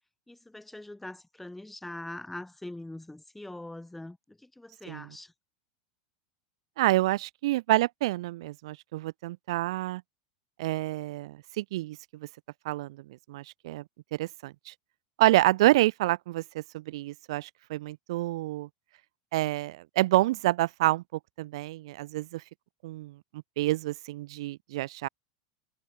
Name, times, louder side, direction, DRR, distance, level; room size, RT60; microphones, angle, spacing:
voice 1, 0.3-5.3, left 1 dB, 5° left, 7.9 m, -43 dB
voice 2, 6.8-10.0 10.6-12.0 12.6-13.0 13.3-13.8 14.1-14.7 15.2-18.7 19.3-21.0 21.4-22.4 22.8-23.1 23.6-25.1, right 17 dB, 75° right, 1.3 m, -28 dB
supercardioid pair, 125°, 3 cm